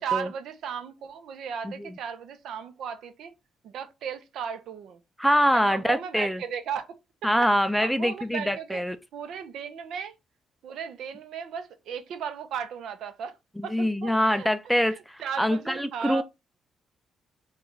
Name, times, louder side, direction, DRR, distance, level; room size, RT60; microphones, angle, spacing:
voice 1, 0.0-3.3 3.6-5.0 5.5-6.9 7.8-8.8 9.1-10.1 10.6-13.3 13.6-14.5 14.9-16.2, right 7 dB, 75° right, 0.6 m, -35 dB
voice 2, 5.2-6.4 7.2-9.0 13.7-16.2, equal, ahead, 0.3 m, -24 dB
3.1 x 2.3 x 3.7 m
cardioid pair, 90°, 0 cm